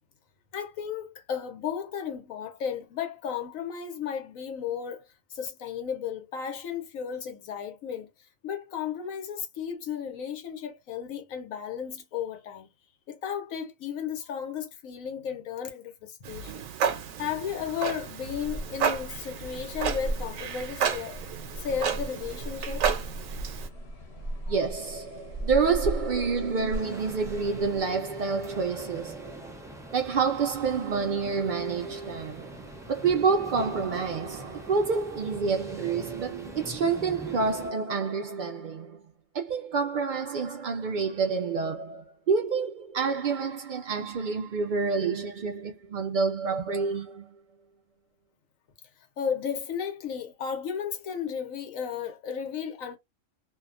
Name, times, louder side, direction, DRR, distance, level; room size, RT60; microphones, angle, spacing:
voice 1, 0.5-8.1 8.4-12.7 13.1-16.7 17.2-21.2 21.6-22.9 49.2-53.0, left 8 dB, 85° left, 1.2 m, -34 dB
Clock, 16.2-23.7, right 7 dB, 80° right, 1.0 m, -32 dB
sound 1, 18.4-27.8, right 1 dB, 55° left, 1.1 m, -37 dB
voice 2, 24.5-39.0 39.3-47.4, right 5 dB, 65° right, 0.5 m, -28 dB
sound 2, 26.7-37.7, equal, 5° right, 0.4 m, -44 dB
2.7 x 2.2 x 2.4 m
omnidirectional pair, 1.4 m